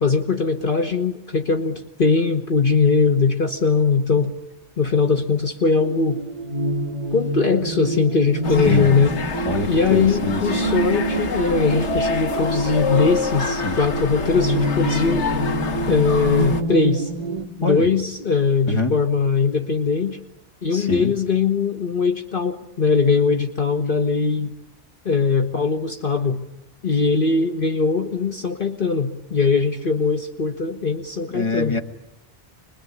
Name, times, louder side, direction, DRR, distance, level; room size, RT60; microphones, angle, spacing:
voice 1, 0.0-4.3 4.8-6.2 7.1-9.2 9.7-15.3 15.9-17.1 17.6-20.2 20.6-24.5 25.0-26.4 26.8-31.8, left 4 dB, 50° left, 5 dB, 1.4 m, -20 dB
sound 1, 5.8-17.5, right 2 dB, 40° right, 2.2 m, -27 dB
sound 2, 8.4-16.6, left 5 dB, 80° left, 1.5 m, -27 dB
voice 2, 9.4-10.4 13.6-13.8 17.6-17.8 18.7-18.9 20.7-21.1 31.3-31.8, left 3 dB, 25° left, 4 dB, 1.7 m, -24 dB
25.5 x 21.5 x 9.6 m, 0.82 s
omnidirectional pair, 1.2 m